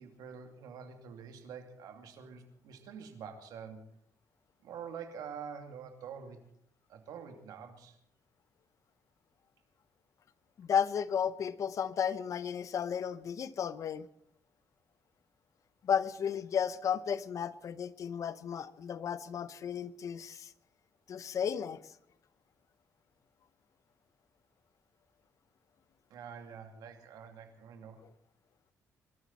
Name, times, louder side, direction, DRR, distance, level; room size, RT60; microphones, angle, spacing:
voice 1, 0.0-3.8 4.6-6.4 6.9-8.0 26.1-28.0, right 7 dB, 85° right, 5 dB, 2.5 m, -46 dB
voice 2, 10.6-14.1 15.8-20.5 21.1-21.8, left 8 dB, 60° left, 15 dB, 0.8 m, -33 dB
24.5 x 13.0 x 4.3 m, 0.69 s
cardioid pair, 100°, 6 cm